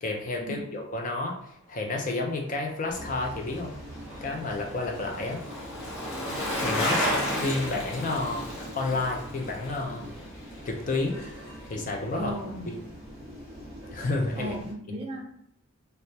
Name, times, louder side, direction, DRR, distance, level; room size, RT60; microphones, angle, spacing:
voice 1, 0.0-3.7 4.2-5.4 6.5-8.5 8.7-10.1 10.6-11.2 11.7-12.3 12.7-12.8 13.9-14.5, left 2 dB, 40° left, 1 dB, 0.4 m, -30 dB
sound 1, 2.9-14.7, equal, 10° right, 0.9 m, -43 dB
Bicycle, 3.0-11.4 11.7-11.8, left 1 dB, 70° left, 0.7 m, -33 dB
voice 2, 12.1-12.8 14.3-15.3, equal, 30° right, 0 dB, 0.4 m, -37 dB
2.2 x 2.1 x 2.7 m, 0.72 s
head